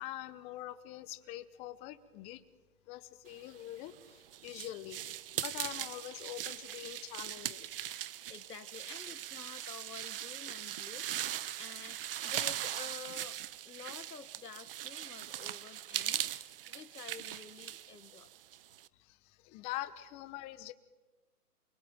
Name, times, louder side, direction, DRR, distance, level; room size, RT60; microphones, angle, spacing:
voice 1, 0.0-2.4 2.9-5.0 5.3-7.7 19.0-20.7, left 14 dB, 15° left, 13 dB, 0.9 m, -44 dB
sound 1, 3.7-18.9, right 11 dB, 35° right, 1.2 m, -40 dB
voice 2, 8.0-11.1 11.6-16.3 16.7-18.3, left 5 dB, 85° left, 11 dB, 2.0 m, -50 dB
28.0 x 23.0 x 9.0 m, 1.2 s
hypercardioid pair, 145°, 46 cm